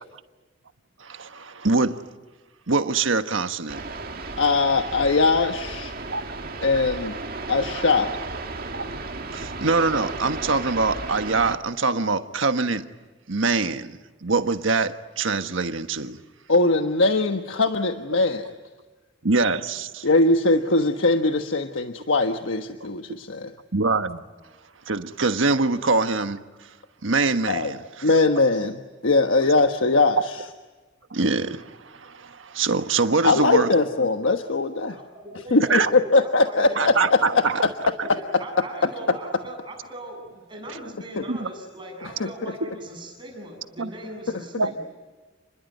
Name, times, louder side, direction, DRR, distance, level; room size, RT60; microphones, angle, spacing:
voice 1, 1.0-2.0 2.7-3.8 6.1-6.2 8.7-8.8 9.3-12.9 13.3-16.2 19.2-20.1 23.7-24.2 24.9-26.4 27.0-28.1 31.1-33.7 35.7-35.9 36.8-37.6 40.7-40.8 41.3-41.5 43.8-43.9 44.6-44.7, right 3 dB, 85° right, 1.4 m, -24 dB
sound 1, 3.7-11.6, right 3 dB, 50° right, 2.1 m, -34 dB
voice 2, 4.4-5.9 6.6-7.2 7.5-8.1 16.5-18.6 20.0-23.5 27.5-27.7 28.0-30.4 33.2-35.0 35.5-37.2 37.6-37.7 41.1-41.2 42.0-42.5, left 3 dB, 85° left, 1.3 m, -21 dB
voice 3, 34.9-36.9 38.0-44.8, right 1 dB, 25° right, 7.6 m, -39 dB
30.0 x 21.5 x 9.4 m
head